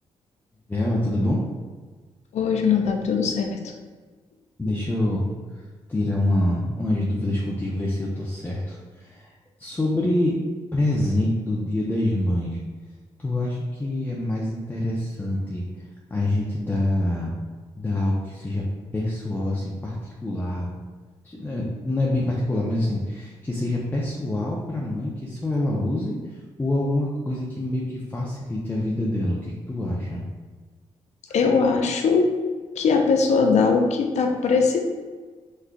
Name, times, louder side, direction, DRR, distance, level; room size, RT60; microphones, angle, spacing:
voice 1, 0.7-1.4 4.6-5.3 5.5-5.6 5.9-9.3 9.6-10.3 10.7-12.6 13.2-15.6 16.1-17.3 17.8-18.6 18.9-20.0 20.2-20.7 21.2-30.2, left 1 dB, 15° left, -4 dB, 0.6 m, -26 dB
voice 2, 2.3-3.7 31.3-32.3 32.8-34.8, left 5 dB, 70° left, 3 dB, 0.5 m, -20 dB
3.7 x 3.1 x 2.2 m, 1.4 s
supercardioid pair, 60°, 12 cm